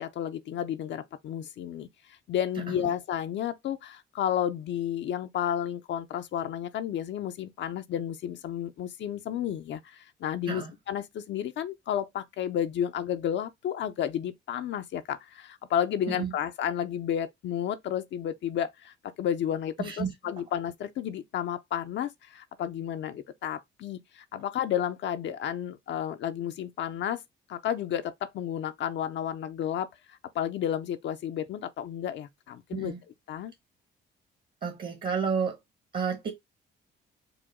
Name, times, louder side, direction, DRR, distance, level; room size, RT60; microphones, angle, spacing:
voice 1, 0.0-27.2 27.5-29.9 30.3-32.9 33.3-33.5, left 10 dB, 65° left, 0.5 m, -32 dB
voice 2, 19.8-20.1 32.7-33.0 34.6-35.6 35.9-36.3, right 6 dB, 50° right, 1.1 m, -30 dB
4.8 x 2.1 x 3.6 m
cardioid pair, 90°, 20 cm